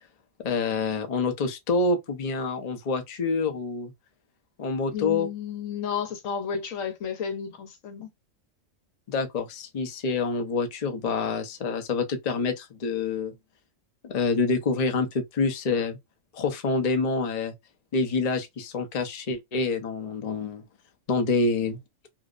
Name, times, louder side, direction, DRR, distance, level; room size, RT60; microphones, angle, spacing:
voice 1, 0.4-3.9 4.6-5.3 9.1-13.3 14.0-16.0 16.3-17.5 17.9-20.6 21.1-21.8, left 4 dB, 45° left, 0.6 m, -27 dB
voice 2, 4.9-8.1, left 7 dB, 85° left, 1.2 m, -32 dB
2.7 x 2.0 x 2.3 m
omnidirectional pair, 1.3 m